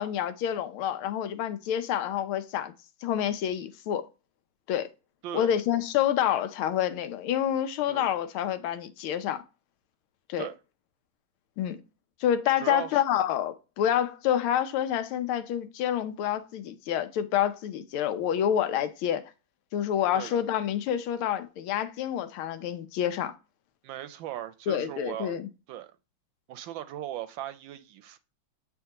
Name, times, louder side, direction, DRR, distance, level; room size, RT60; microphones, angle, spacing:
voice 1, 0.0-2.7 3.0-4.0 4.7-4.9 5.3-9.4 10.3-10.5 11.6-11.8 12.2-19.2 19.7-23.3 24.7-25.5, left 10 dB, 85° left, 1.5 m, -28 dB
voice 2, 12.6-13.0 20.1-20.4 23.8-25.3 25.7-25.9 26.5-28.2, right 12 dB, 75° right, 1.3 m, -38 dB
8.2 x 4.4 x 2.8 m
omnidirectional pair, 2.3 m